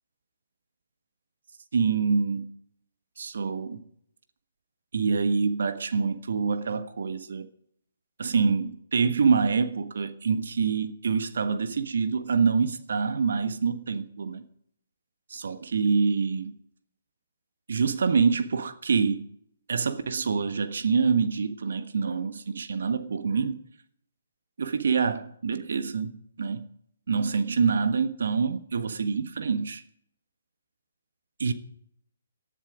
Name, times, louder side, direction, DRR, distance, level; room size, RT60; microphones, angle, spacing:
voice 1, 1.7-2.5 3.2-3.8 4.9-7.5 8.2-14.4 15.3-16.5 17.7-19.3 19.7-23.6 24.6-26.7 27.1-29.8 31.4-31.5, right 5 dB, 60° right, 1.4 m, -26 dB
18.5 x 11.5 x 5.1 m
figure-of-eight pair, 135°, 0 cm